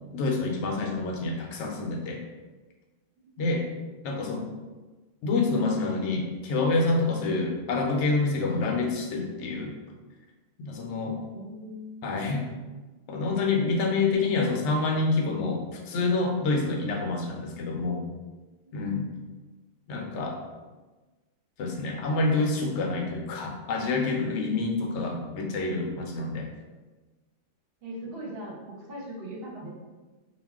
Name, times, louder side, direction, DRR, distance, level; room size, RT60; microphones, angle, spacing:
voice 1, 0.1-2.2 3.4-3.6 4.0-4.5 5.2-9.7 10.6-11.2 12.0-12.4 13.1-18.0 18.7-19.1 19.9-20.4 21.6-26.5, left 3 dB, 75° left, 1 dB, 0.8 m, -27 dB
voice 2, 11.3-12.0 18.6-19.0 27.8-29.7, right 1 dB, 60° right, -2 dB, 0.8 m, -40 dB
2.3 x 2.2 x 3.4 m, 1.2 s
omnidirectional pair, 1.2 m